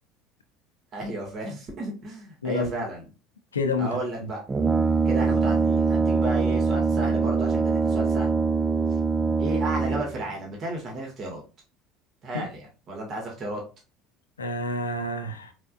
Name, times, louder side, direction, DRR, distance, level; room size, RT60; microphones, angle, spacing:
voice 1, 0.9-3.0 3.8-4.4 5.0-8.3 9.4-11.4 12.2-13.6, right 2 dB, 40° right, 1.9 m, -33 dB
voice 2, 2.4-2.9 3.5-4.3 12.3-12.5 14.4-15.5, left 2 dB, 85° left, 0.7 m, -29 dB
Brass instrument, 4.5-10.3, right 4 dB, 25° right, 0.4 m, -23 dB
4.4 x 4.3 x 2.4 m
figure-of-eight pair, 70°, 0 cm